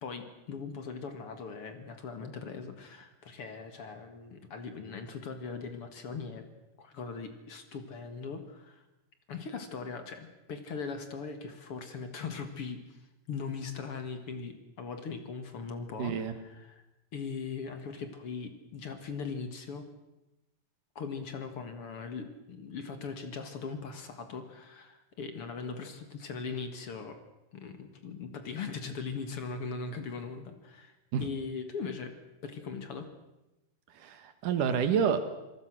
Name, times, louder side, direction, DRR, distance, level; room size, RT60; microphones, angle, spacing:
voice 1, 0.0-6.5 6.8-8.8 9.3-16.9 17.1-19.9 21.0-27.2 27.5-32.1 32.4-33.1, left 5 dB, 45° left, 8 dB, 2.1 m, -40 dB
voice 2, 16.0-16.3 31.1-31.3 33.9-35.2, right 7 dB, 65° right, 10 dB, 2.9 m, -28 dB
26.5 x 19.5 x 6.3 m, 0.97 s
omnidirectional pair, 4.3 m